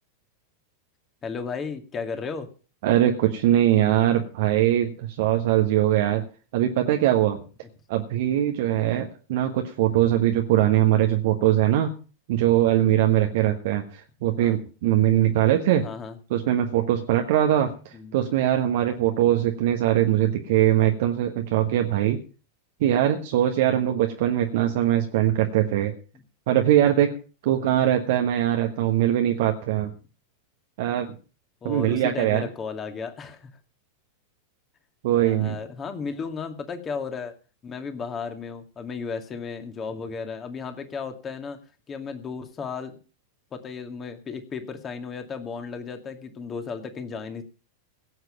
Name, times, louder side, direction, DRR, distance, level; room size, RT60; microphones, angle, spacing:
voice 1, 1.2-2.5 8.7-9.1 14.4-14.6 15.8-16.2 17.9-18.1 19.3-19.5 27.6-27.8 31.6-33.5 35.1-37.3 37.6-41.6 41.9-42.9 43.5-47.4, left 5 dB, 25° left, 7 dB, 2.2 m, -34 dB
voice 2, 2.8-6.2 6.5-7.4 7.9-11.9 12.3-15.8 16.3-17.7 18.1-22.2 22.8-25.9 26.5-27.1 27.4-29.9 30.8-31.1 31.6-32.4 35.0-35.5, right 12 dB, 50° right, 4 dB, 1.3 m, -21 dB
17.0 x 8.2 x 5.1 m, 0.36 s
figure-of-eight pair, 90°, 0 cm